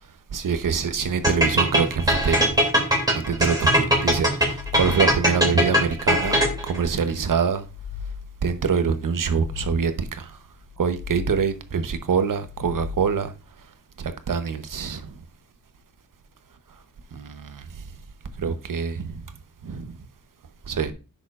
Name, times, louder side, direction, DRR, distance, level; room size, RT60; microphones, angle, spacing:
voice 1, 0.3-2.6 3.1-6.4 6.6-7.7 8.4-10.4 10.8-13.3 14.0-15.1 17.1-17.8 18.4-19.2 19.6-19.9 20.7-20.9, right 6 dB, 65° right, 1.0 m, -25 dB
sound 1, 1.2-6.8, equal, 10° right, 2.8 m, -20 dB
sound 2, 4.2-5.3 5.8-6.9 7.4-8.5 9.0-10.1 10.6-11.7 12.2-13.3, left 6 dB, 15° left, 3.3 m, -37 dB
10.5 x 7.0 x 2.5 m
wide cardioid pair, 100°, 34 cm